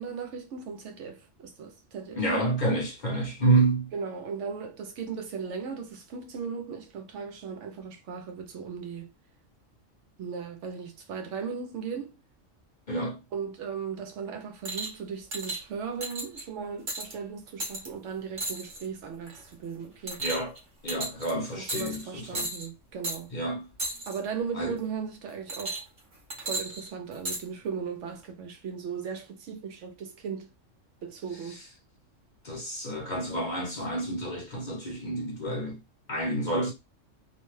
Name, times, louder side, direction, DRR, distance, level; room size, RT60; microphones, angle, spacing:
voice 1, 0.0-2.5 3.9-9.1 10.2-12.2 13.3-20.2 21.6-23.3 24.1-25.8 26.4-30.5 31.0-31.6, right 6 dB, 70° right, 0.9 m, -37 dB
voice 2, 2.2-3.9 12.9-13.2 20.2-20.5 20.8-22.5 23.3-23.7 24.5-24.8 32.4-35.8 36.1-36.7, right 2 dB, 45° left, 0.8 m, -28 dB
sound 1, 14.7-15.0 15.3-15.6 16.0-16.4 16.9-17.1 17.6-17.9 18.4-18.9 19.3-19.5 20.1-20.6 20.9-21.3 21.7-22.0 22.3-22.7 23.0-23.2 23.8-24.2 25.5-26.0 26.3-27.4 28.2-28.3, right 2 dB, 45° right, 1.0 m, -34 dB
2.5 x 2.2 x 3.1 m
omnidirectional pair, 1.3 m